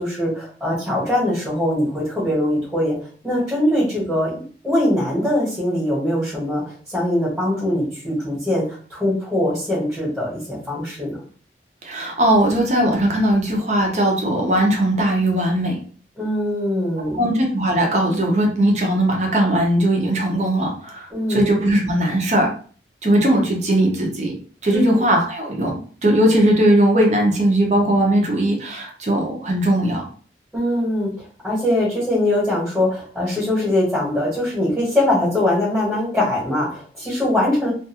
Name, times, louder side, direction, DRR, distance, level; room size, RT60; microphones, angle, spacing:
voice 1, 0.0-2.9 3.2-11.2 16.2-17.2 21.1-21.4 24.7-24.9 30.5-37.7, left 1 dB, 5° right, -6 dB, 1.1 m, -22 dB
voice 2, 11.8-15.8 17.1-22.5 23.0-24.3 24.6-25.7 26.0-30.0, right 1 dB, 40° right, 1 dB, 0.7 m, -19 dB
2.6 x 2.3 x 2.8 m, 0.43 s
head